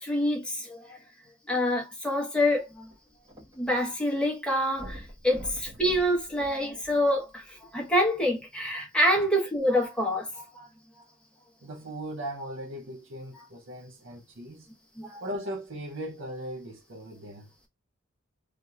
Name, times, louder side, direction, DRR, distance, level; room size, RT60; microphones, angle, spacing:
voice 1, 0.0-1.0 1.5-2.9 3.6-10.7 15.0-15.2, equal, 5° left, 1.0 m, -27 dB
sound 1, 2.5-3.9 4.2-4.3 4.7-7.3 8.0-8.1, equal, 25° right, 1.2 m, -45 dB
voice 2, 11.6-14.7 15.2-17.5, right 1 dB, 60° right, 0.6 m, -38 dB
3.3 x 2.8 x 2.3 m
head